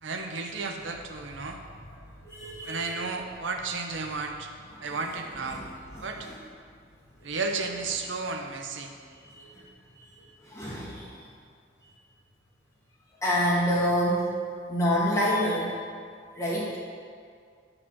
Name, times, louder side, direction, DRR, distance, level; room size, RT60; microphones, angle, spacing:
voice 1, 0.0-1.6 2.7-4.5 4.8-5.6 6.0-6.3 7.2-8.9, right 4 dB, 70° right, 3 dB, 0.8 m, -33 dB
voice 2, 2.2-3.0 4.7-5.0 5.5-5.7 5.9-6.3 9.2-9.6 10.0-10.1 10.4-11.1 13.2-14.3 14.7-15.7 16.4-16.8, equal, 15° left, -6 dB, 2.2 m, -27 dB
11.0 x 4.9 x 7.3 m, 2.2 s
head